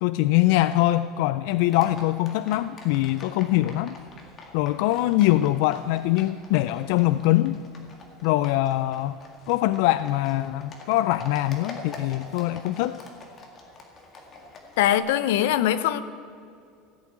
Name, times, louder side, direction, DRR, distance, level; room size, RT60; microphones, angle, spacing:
voice 1, 0.0-4.0 4.5-7.6 8.2-9.2 9.5-13.0, left 15 dB, 60° left, 13 dB, 0.4 m, -23 dB
Livestock farm animals working animals, 1.6-15.0, left 3 dB, 25° left, 1.9 m, -46 dB
voice 2, 14.8-16.0, left 12 dB, 85° left, 14 dB, 0.8 m, -22 dB
15.5 x 8.6 x 9.2 m, 2.5 s
cardioid pair, 170°, 0 cm